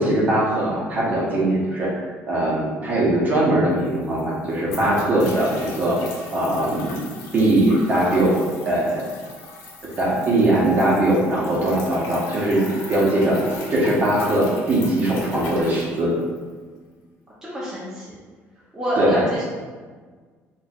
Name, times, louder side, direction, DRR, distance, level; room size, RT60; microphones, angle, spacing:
voice 1, 0.0-6.0 6.3-7.0 7.3-9.0 10.0-13.4 13.7-16.1 19.0-19.2, right 1 dB, 35° right, -5 dB, 0.9 m, -20 dB
sound 1, 3.4-3.5 3.7-16.5, left 2 dB, 85° left, 0.8 m, -37 dB
voice 2, 17.4-18.1 18.7-19.4, right 1 dB, 10° right, -9 dB, 0.6 m, -27 dB
4.2 x 2.5 x 2.4 m, 1.5 s
cardioid pair, 150°, 5 cm